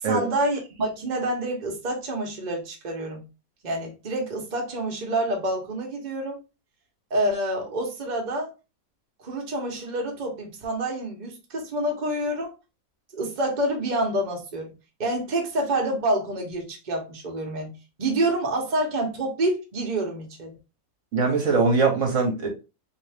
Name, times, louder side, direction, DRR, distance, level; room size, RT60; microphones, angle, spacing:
voice 1, 0.0-3.2 3.6-6.4 7.1-8.5 9.2-12.5 13.1-14.7 15.0-17.7 18.0-20.6, right 1 dB, 35° right, 1.0 m, -27 dB
voice 2, 21.1-22.5, right 4 dB, 60° right, 1.2 m, -22 dB
3.7 x 2.7 x 3.4 m
omnidirectional pair, 1.5 m